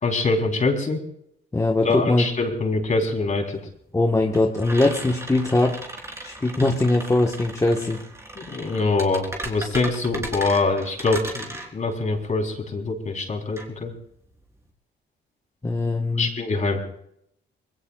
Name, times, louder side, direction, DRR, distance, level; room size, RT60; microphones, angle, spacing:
voice 1, 0.0-1.0 1.8-3.6 8.4-13.9 16.2-16.8, left 3 dB, 40° left, 2 dB, 4.1 m, -24 dB
voice 2, 1.5-2.3 3.9-5.8 6.2-8.0 15.6-16.3, left 2 dB, 15° left, 0 dB, 1.5 m, -21 dB
sound 1, 1.6-1.7 2.0-14.7, right 1 dB, 15° right, 3.9 m, -37 dB
26.0 x 20.5 x 2.5 m, 0.73 s
cardioid pair, 90°, 20 cm